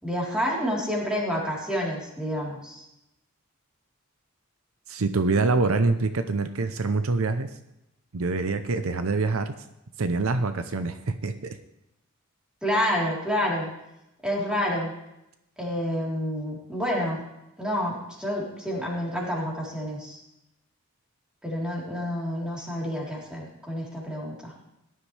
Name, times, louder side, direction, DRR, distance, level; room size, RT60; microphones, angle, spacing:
voice 1, 0.0-2.8 12.6-13.7 14.2-14.9 15.6-17.2 17.6-20.2 21.4-24.5, equal, 5° right, -4 dB, 3.6 m, -28 dB
voice 2, 4.9-7.5 8.1-9.5 10.0-11.6, right 3 dB, 70° right, 10 dB, 0.7 m, -25 dB
18.0 x 11.5 x 3.3 m, 0.88 s
head